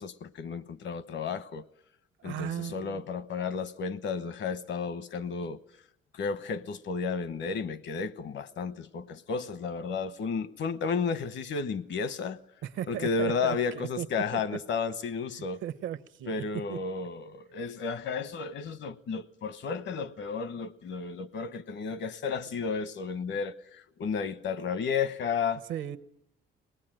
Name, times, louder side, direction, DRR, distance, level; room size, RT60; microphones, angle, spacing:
voice 1, 0.0-1.6 2.2-5.6 6.1-12.4 12.9-15.6 16.3-25.6, left 5 dB, 65° left, 1.1 m, -33 dB
voice 2, 2.2-3.0 12.6-14.1 14.3-14.4 15.6-16.4 16.7-16.8 25.7-26.0, right 10 dB, 75° right, 0.9 m, -36 dB
24.0 x 19.5 x 9.0 m
cardioid pair, 90°, 20 cm